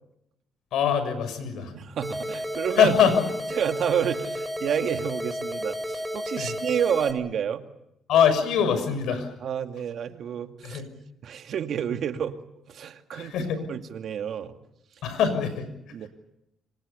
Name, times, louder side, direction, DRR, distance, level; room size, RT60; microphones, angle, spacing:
voice 1, 0.7-1.7 2.8-3.2 6.4-6.5 8.1-9.3 10.6-10.9 13.1-13.6 15.0-15.7, left 7 dB, 80° left, 11 dB, 6.5 m, -23 dB
voice 2, 1.7-2.9 3.5-7.6 9.4-10.8 11.2-12.4 12.7-14.6 15.9-16.1, right 8 dB, 65° right, 6 dB, 2.4 m, -29 dB
sound 1, 2.0-7.1, equal, ahead, 6.1 m, -32 dB
28.0 x 24.5 x 7.0 m, 0.84 s
cardioid pair, 90°, 0 cm